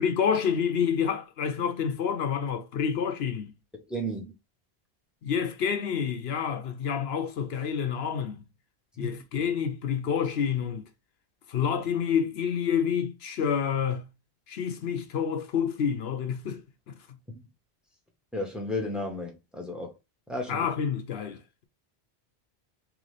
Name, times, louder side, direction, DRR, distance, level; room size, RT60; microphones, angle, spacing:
voice 1, 0.0-3.5 5.2-8.4 9.0-10.9 11.5-14.1 14.5-16.6 16.9-17.2 20.5-21.6, left 7 dB, 75° left, 0.9 m, -28 dB
voice 2, 3.7-4.3 9.0-9.2 18.3-19.9 20.3-20.7, left 1 dB, ahead, 1.0 m, -33 dB
3.8 x 3.3 x 3.2 m
omnidirectional pair, 1.1 m